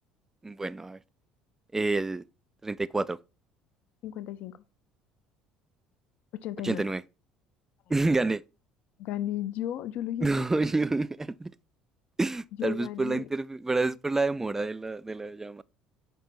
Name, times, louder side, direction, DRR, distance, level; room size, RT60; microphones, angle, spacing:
voice 1, 0.4-1.0 1.7-2.2 2.6-3.2 6.6-7.0 7.9-8.4 10.2-11.5 12.2-15.6, right 3 dB, 15° right, 0.3 m, -28 dB
voice 2, 4.0-4.6 6.3-6.8 9.0-10.5 12.6-13.3, left 12 dB, 55° left, 0.5 m, -34 dB
5.3 x 5.2 x 4.3 m
figure-of-eight pair, 60°, 3 cm